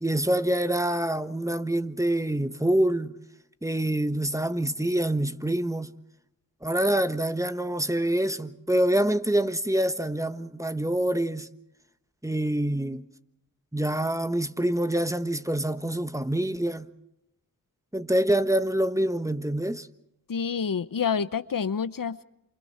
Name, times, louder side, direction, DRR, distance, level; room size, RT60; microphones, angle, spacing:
voice 1, 0.0-3.1 3.6-5.9 6.6-11.5 12.2-13.0 13.7-16.9 17.9-19.9, right 1 dB, 10° right, 1.3 m, -26 dB
voice 2, 20.3-22.2, left 6 dB, 70° left, 0.8 m, -28 dB
28.5 x 27.5 x 4.3 m
cardioid pair, 45°, 35 cm